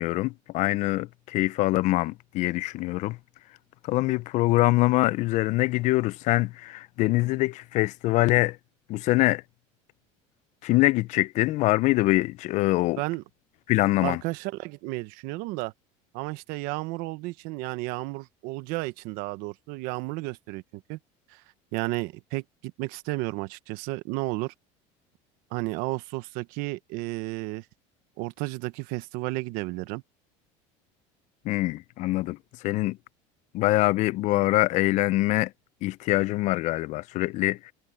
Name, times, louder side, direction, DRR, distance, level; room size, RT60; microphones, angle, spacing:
voice 1, 0.0-3.2 3.9-8.6 8.9-9.4 10.6-13.0 13.7-14.2 31.4-32.4 32.6-33.0 33.5-35.5 35.8-37.7, left 18 dB, 50° left, 0.5 m, -24 dB
voice 2, 14.0-15.7 16.1-21.0 21.3-21.4 21.7-24.5 25.5-27.6 28.2-30.0, right 21 dB, 70° right, 1.1 m, -32 dB
cardioid pair, 135°, 15 cm